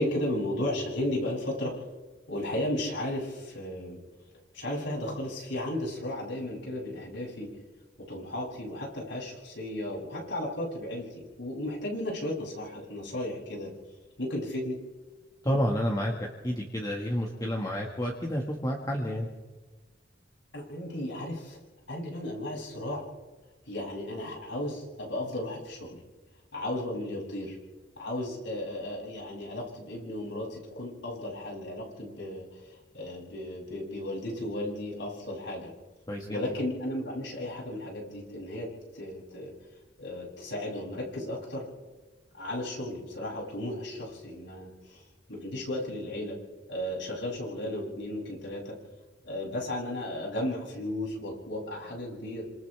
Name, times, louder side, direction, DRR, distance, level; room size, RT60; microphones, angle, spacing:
voice 1, 0.0-1.8 2.3-4.0 4.5-7.5 8.1-13.7 14.2-14.8 20.5-21.6 21.9-23.0 23.7-26.0 26.5-27.6 28.0-35.7 36.3-38.7 38.9-39.5 40.0-41.6 42.3-45.0 45.3-46.4 46.7-48.7 49.2-52.4, left 1 dB, 80° left, -3 dB, 8.0 m, -34 dB
voice 2, 15.4-19.3 36.1-36.4, equal, 20° left, -1 dB, 1.9 m, -30 dB
29.0 x 26.5 x 3.5 m, 1.3 s
head